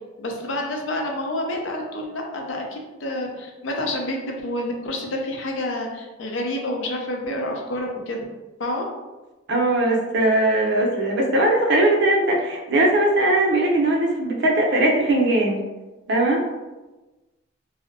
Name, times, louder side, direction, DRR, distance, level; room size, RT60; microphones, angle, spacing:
voice 1, 0.2-8.2 8.6-8.8, left 1 dB, 75° left, 1 dB, 0.5 m, -28 dB
voice 2, 9.5-15.6 16.1-16.4, right 1 dB, 60° right, -1 dB, 0.5 m, -19 dB
2.6 x 2.0 x 2.5 m, 1.1 s
head